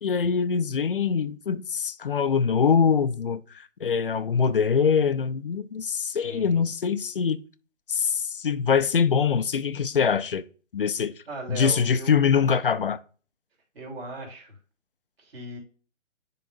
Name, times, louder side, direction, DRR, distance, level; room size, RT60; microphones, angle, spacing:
voice 1, 0.0-7.4 7.9-10.4 10.7-11.1 11.5-13.0, left 6 dB, 50° left, 0.4 m, -23 dB
voice 2, 6.1-6.6 11.2-12.2 13.7-14.6 15.2-15.6, right 1 dB, 50° right, 3.3 m, -38 dB
10.5 x 3.8 x 2.6 m
figure-of-eight pair, 145°, 37 cm